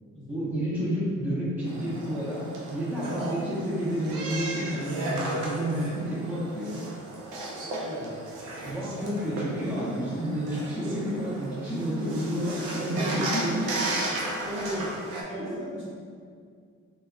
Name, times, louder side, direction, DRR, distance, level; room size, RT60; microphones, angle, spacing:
voice 1, 0.3-6.7 8.6-13.9, equal, 5° right, -9 dB, 0.6 m, -30 dB
sound 1, 1.6-15.2, right 2 dB, 85° right, 0.6 m, -34 dB
voice 2, 7.8-8.1 14.4-15.9, equal, 40° right, -7 dB, 1.1 m, -36 dB
2.2 x 2.2 x 3.6 m, 2.2 s
cardioid pair, 90°, 30 cm